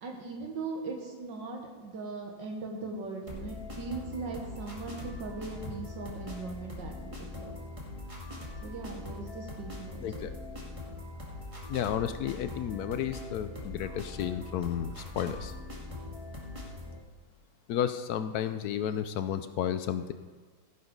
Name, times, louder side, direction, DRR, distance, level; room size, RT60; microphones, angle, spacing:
voice 1, 0.0-7.5 8.6-10.0 13.8-14.0, right 3 dB, 70° right, 1 dB, 2.0 m, -39 dB
sound 1, 3.3-17.0, left 2 dB, 15° right, 2.1 m, -42 dB
voice 2, 11.7-15.5 17.7-20.1, left 9 dB, 70° left, 11 dB, 0.9 m, -32 dB
16.5 x 6.7 x 5.3 m, 1.5 s
omnidirectional pair, 2.1 m